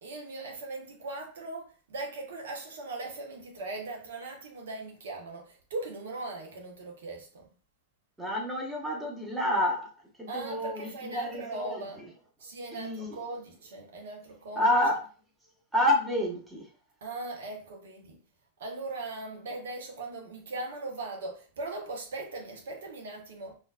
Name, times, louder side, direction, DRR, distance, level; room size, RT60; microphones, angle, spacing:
voice 1, 0.0-7.5 10.3-12.0 12.4-14.7 17.0-18.2 18.6-23.6, right 2 dB, 60° right, 1.0 m, -39 dB
voice 2, 8.2-9.9 10.2-11.8 12.7-13.2 14.6-15.0 15.7-16.6, left 1 dB, 10° right, 1.3 m, -28 dB
4.3 x 2.7 x 2.3 m
figure-of-eight pair, 90°, 0 cm